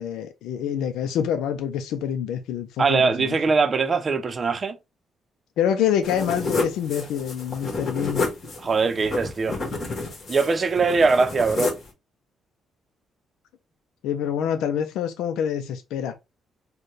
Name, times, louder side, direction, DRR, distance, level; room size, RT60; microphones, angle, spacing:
voice 1, 0.0-3.4 5.6-8.2 14.0-16.1, left 9 dB, 85° left, 0.4 m, -26 dB
voice 2, 2.8-4.8 8.6-9.6 10.3-11.7, right 4 dB, 40° right, 0.6 m, -21 dB
sound 1, 6.0-11.9, left 3 dB, 50° left, 1.6 m, -30 dB
4.3 x 2.2 x 3.2 m
cardioid pair, 90°, 0 cm